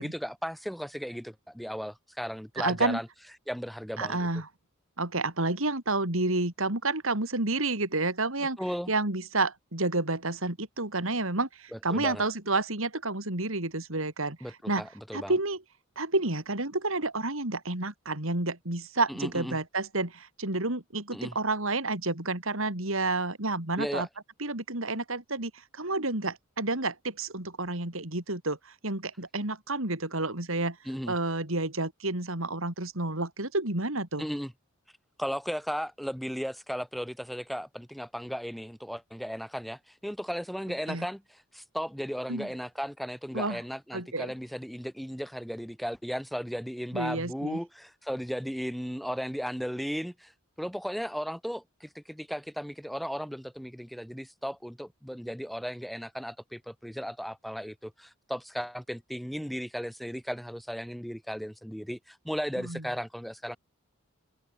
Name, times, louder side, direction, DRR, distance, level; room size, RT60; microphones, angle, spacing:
voice 1, 0.0-3.1 3.5-4.3 8.4-8.9 11.7-12.2 14.4-15.3 19.1-19.6 21.1-21.4 23.8-24.1 30.9-31.1 34.2-34.5 35.2-50.3 50.6-63.6, equal, ahead, 6.9 m, -36 dB
voice 2, 2.6-3.0 4.0-4.5 5.0-8.6 8.9-14.4 14.7-14.9 15.1-15.6 16.0-24.1 24.4-30.8 31.1-34.2 40.9-41.1 42.3-42.5 43.3-43.6 43.9-44.3 46.9-47.6 62.6-62.8, right 2 dB, 70° right, 4.4 m, -30 dB
open air
head